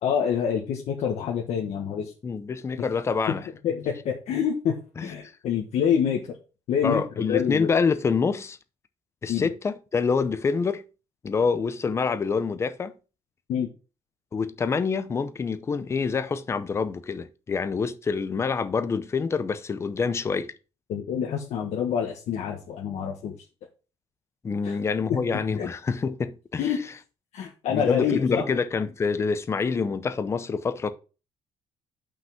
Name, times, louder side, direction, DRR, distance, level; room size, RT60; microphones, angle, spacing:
voice 1, 0.0-2.1 3.6-4.7 5.0-6.2 6.7-7.7 9.3-9.4 13.5-13.7 20.9-23.3 24.6-24.8 25.6-25.7 26.6-26.8 27.3-28.4, left 8 dB, 65° left, 1.4 m, -26 dB
voice 2, 2.2-3.5 5.0-5.1 6.8-8.6 9.2-10.8 11.2-12.9 14.3-20.5 24.4-26.7 27.7-30.9, left 5 dB, 20° left, 0.6 m, -26 dB
5.8 x 5.3 x 5.8 m
cardioid pair, 175°, 12 cm